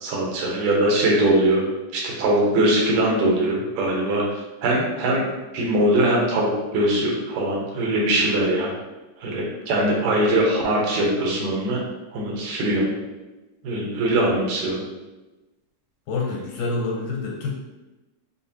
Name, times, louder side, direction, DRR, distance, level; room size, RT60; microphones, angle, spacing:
voice 1, 0.0-1.6 1.9-4.2 4.6-5.3 5.5-8.7 9.2-11.8 12.1-12.9 13.6-14.8, right 1 dB, 80° right, -2 dB, 2.5 m, -21 dB
voice 2, 16.1-17.5, left 3 dB, 80° left, -1 dB, 2.0 m, -27 dB
6.6 x 2.4 x 2.7 m, 1.1 s
omnidirectional pair, 3.9 m